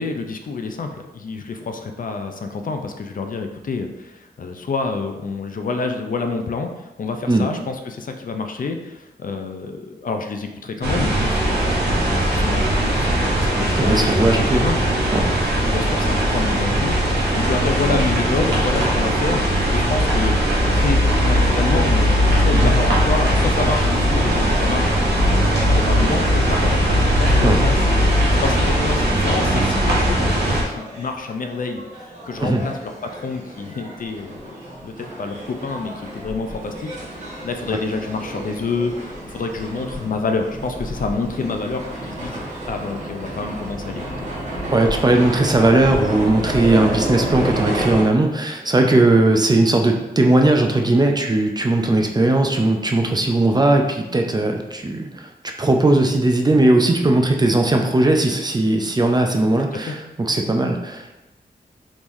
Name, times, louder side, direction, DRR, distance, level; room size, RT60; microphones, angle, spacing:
voice 1, 0.0-14.8 15.7-20.4 20.7-44.3 59.7-60.0, left 4 dB, 55° left, 5 dB, 0.4 m, -28 dB
sound 1, 10.8-30.6, equal, 85° right, 0.9 m, -19 dB
voice 2, 13.8-14.6 15.1-15.3 22.5-22.7 27.4-27.6 32.4-32.6 44.7-55.3 55.6-61.2, right 2 dB, 25° right, 3 dB, 0.4 m, -18 dB
sound 2, 29.5-48.0, right 1 dB, 45° right, 1.1 m, -31 dB
3.6 x 3.0 x 2.6 m, 0.99 s
cardioid pair, 65°, 17 cm